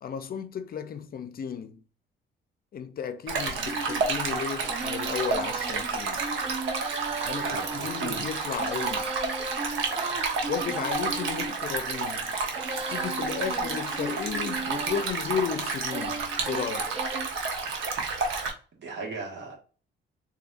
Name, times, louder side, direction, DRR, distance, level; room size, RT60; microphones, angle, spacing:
voice 1, 0.0-1.8 2.7-6.2 7.2-9.1 10.5-12.3 12.9-16.2 16.5-16.9, left 7 dB, 50° left, 0.5 m, -34 dB
Stream, 3.3-18.5, right 4 dB, 80° right, 0.9 m, -30 dB
Female singing, 3.7-17.3, right 3 dB, 30° right, 0.5 m, -37 dB
voice 2, 7.4-8.3 18.7-19.6, right 4 dB, 65° right, 1.6 m, -37 dB
3.9 x 2.7 x 2.5 m
cardioid pair, 90°, 20 cm